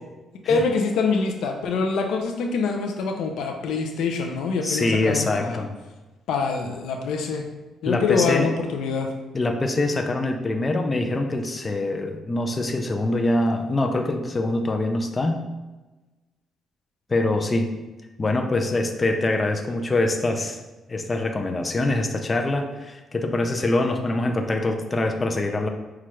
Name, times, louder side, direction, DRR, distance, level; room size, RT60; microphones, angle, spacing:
voice 1, 0.5-5.7 6.3-7.5 7.8-9.1, left 4 dB, 80° left, 3 dB, 0.5 m, -25 dB
voice 2, 4.6-5.7 7.9-8.5 9.3-15.5 17.1-17.7 18.2-20.6 20.9-25.7, left 2 dB, 25° left, 4 dB, 0.4 m, -24 dB
5.8 x 2.4 x 3.1 m, 1.2 s
cardioid pair, 90°, 0 cm